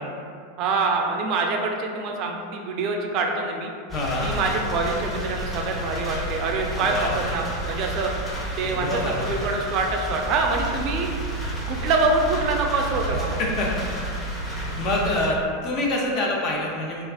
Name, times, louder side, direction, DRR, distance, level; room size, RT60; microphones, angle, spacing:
voice 1, 0.6-3.7 4.2-8.1 8.6-11.1 11.7-13.4, right 3 dB, 50° right, 2 dB, 0.3 m, -25 dB
voice 2, 3.9-4.3 6.7-7.2 8.6-9.3 13.4-14.1 14.8-17.0, left 1 dB, 45° left, -2 dB, 0.6 m, -26 dB
sound 1, 3.9-15.3, right 1 dB, 20° left, 0.9 m, -31 dB
3.3 x 2.4 x 2.3 m, 2.3 s
hypercardioid pair, 90°, 0 cm